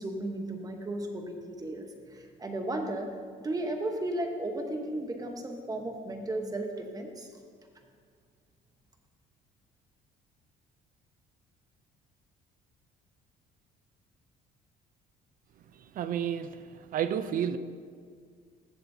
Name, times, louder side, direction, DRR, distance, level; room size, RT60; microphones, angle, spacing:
voice 1, 0.0-3.1 3.4-7.3, right 1 dB, 20° right, 4 dB, 1.1 m, -35 dB
voice 2, 15.9-17.6, right 9 dB, 55° right, 12 dB, 0.5 m, -31 dB
15.0 x 7.2 x 2.8 m, 2.1 s
cardioid pair, 110°, 17 cm